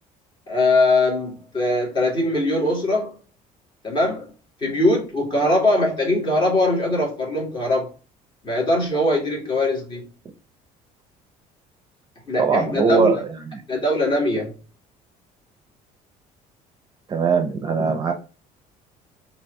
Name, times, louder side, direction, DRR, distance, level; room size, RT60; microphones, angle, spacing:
voice 1, 0.5-3.2 3.8-4.3 4.6-7.9 8.4-10.1 12.3-13.1 13.7-14.5, left 2 dB, 30° left, 2.1 m, -21 dB
voice 2, 12.4-13.6 17.1-18.1, right 5 dB, 30° right, 0.6 m, -21 dB
4.4 x 2.8 x 3.3 m
cardioid pair, 150°, 15 cm